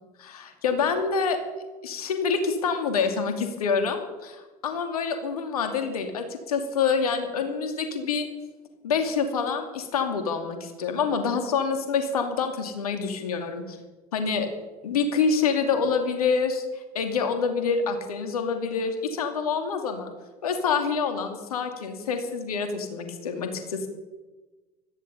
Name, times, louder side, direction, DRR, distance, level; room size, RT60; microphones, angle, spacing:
voice 1, 0.2-1.4 1.8-8.3 8.8-13.8 14.1-14.5 14.8-20.1 20.4-23.9, left 5 dB, 75° left, 6 dB, 2.6 m, -27 dB
17.0 x 14.0 x 5.6 m, 1.2 s
figure-of-eight pair, 70°, 19 cm